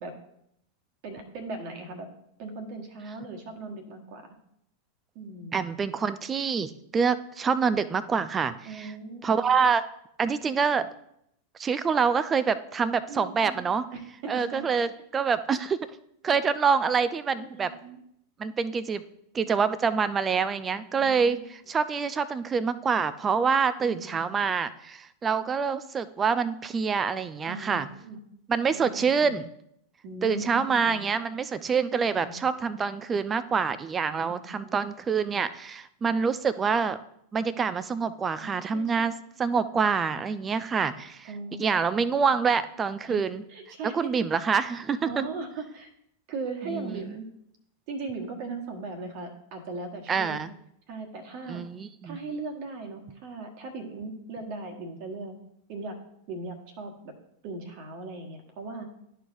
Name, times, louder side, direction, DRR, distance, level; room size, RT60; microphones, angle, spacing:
voice 1, 1.0-2.1 2.4-4.3 5.1-5.6 8.6-9.4 13.1-14.6 16.3-16.5 17.3-18.0 20.7-21.4 23.8-24.4 27.4-28.2 28.7-29.4 30.0-31.0 32.1-32.4 34.3-34.8 38.4-39.2 41.3-41.7 41.9-42.3 43.0-43.2 43.5-44.1 45.1-45.9 46.3-47.2 47.9-50.4 50.9-51.6 52.0-55.4 55.7-56.0 56.3-57.1 57.4-58.9, right 3 dB, 45° right, 3 dB, 1.3 m, -38 dB
voice 2, 5.5-8.9 9.2-9.8 10.2-10.9 11.6-13.9 14.3-15.8 16.2-17.7 18.4-19.0 19.3-27.9 28.5-29.5 30.2-37.0 37.3-39.1 39.4-41.3 41.6-43.4 43.9-45.1 46.7-47.1 50.1-50.5 51.5-52.2, right 6 dB, 20° right, 14 dB, 0.4 m, -26 dB
12.0 x 4.6 x 2.6 m, 0.75 s
figure-of-eight pair, 90°, 0 cm